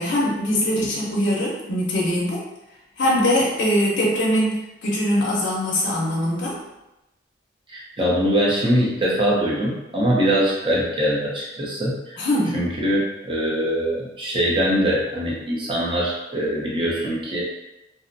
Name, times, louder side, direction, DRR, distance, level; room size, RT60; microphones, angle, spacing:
voice 1, 0.0-2.4 3.0-6.6 12.2-12.6, equal, 60° left, -4 dB, 0.5 m, -22 dB
voice 2, 7.7-12.2 12.5-17.4, equal, 25° right, -5 dB, 0.5 m, -22 dB
2.5 x 2.0 x 2.5 m, 0.94 s
head